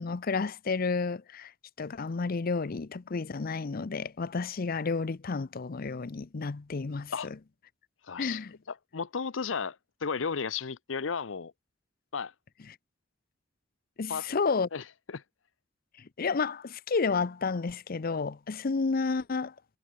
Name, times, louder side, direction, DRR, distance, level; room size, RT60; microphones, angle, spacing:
voice 1, 0.0-1.5 1.8-7.4 8.2-8.5 12.7-12.8 14.0-14.7 16.0-19.5, left 4 dB, 50° left, 0.6 m, -31 dB
voice 2, 8.1-8.4 8.9-9.8 10.0-11.5 12.1-12.3 14.1-14.3 14.7-14.8 15.1-15.2, left 5 dB, 90° left, 0.7 m, -33 dB
head